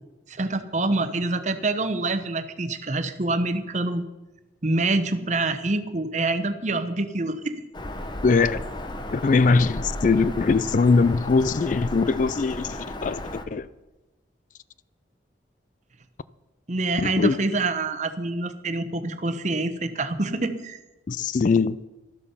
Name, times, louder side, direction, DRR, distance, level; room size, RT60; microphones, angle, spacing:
voice 1, 0.3-4.0 4.6-7.5 16.7-20.8, right 2 dB, 40° right, 1.0 m, -26 dB
Bird vocalization bird call bird song, 7.7-13.4, left 1 dB, 25° left, 1.0 m, -34 dB
voice 2, 8.2-8.6 9.1-13.2 13.5-13.7 17.0-17.4 21.1-21.8, left 4 dB, 45° left, 0.4 m, -21 dB
13.0 x 12.5 x 5.6 m
head